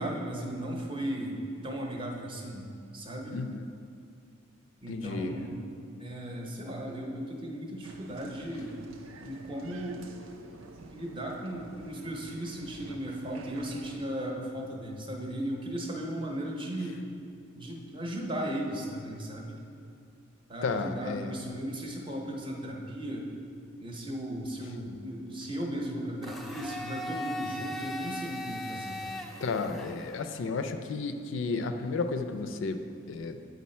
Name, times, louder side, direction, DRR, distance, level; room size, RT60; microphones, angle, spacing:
voice 1, 0.0-3.4 4.8-5.6 6.0-8.7 9.2-10.3 10.9-17.0 17.5-19.6 20.5-23.3 23.8-29.2, right 1 dB, 25° right, 0 dB, 0.7 m, -36 dB
voice 2, 3.3-3.7 4.9-5.3 20.6-21.3 29.4-32.8 33.1-33.4, left 4 dB, 70° left, 8 dB, 0.4 m, -32 dB
Applause, 7.8-14.0, right 2 dB, 80° right, 0.5 m, -49 dB
Domestic sounds home sounds, 26.2-30.3, left 1 dB, ahead, 0.4 m, -39 dB
8.4 x 3.9 x 4.2 m, 2.4 s
head